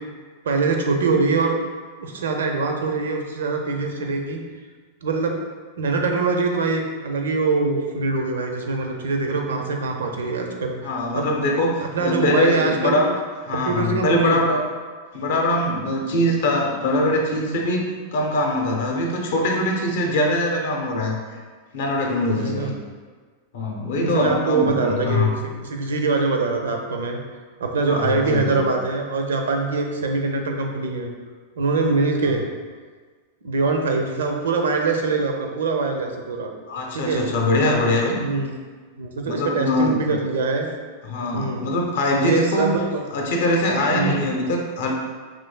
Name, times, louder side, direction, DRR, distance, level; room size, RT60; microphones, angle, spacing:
voice 1, 0.4-1.6 2.0-4.4 5.0-5.3 5.8-11.3 11.9-13.0 13.5-14.4 22.4-22.7 23.9-25.3 25.7-27.2 27.6-31.1 31.6-32.4 33.4-36.5 36.9-37.2 38.2-38.6 39.0-40.7 41.3-41.7 42.1-43.0 43.9-44.2, right 3 dB, 65° right, 3 dB, 0.5 m, -23 dB
voice 2, 10.8-13.1 13.5-14.6 15.1-21.2 21.7-22.7 23.5-25.4 27.9-28.6 36.7-38.2 39.2-40.1 41.0-42.7 43.1-44.9, left 1 dB, 55° left, 1 dB, 0.6 m, -22 dB
4.9 x 3.1 x 2.2 m, 1.5 s
figure-of-eight pair, 90°, 0 cm